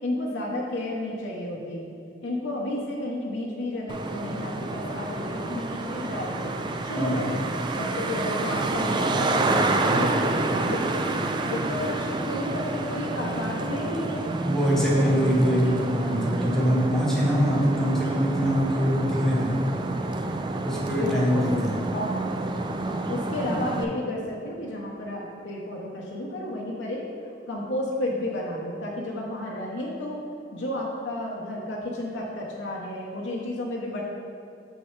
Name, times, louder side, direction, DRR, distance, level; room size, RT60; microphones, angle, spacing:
voice 1, 0.0-1.9 2.2-6.5 6.8-7.4 7.7-10.9 11.4-14.3 14.9-15.7 20.9-21.6 21.9-22.4 23.1-27.0 27.5-30.2 30.5-34.0, left 1 dB, 85° left, -3 dB, 0.8 m, -32 dB
Traffic noise roadway noise, 3.9-23.8, right 2 dB, 25° right, 0.3 m, -29 dB
voice 2, 7.0-7.3 14.4-19.6 20.6-21.8, equal, 5° left, -6 dB, 1.1 m, -23 dB
6.5 x 6.3 x 3.2 m, 2.6 s
head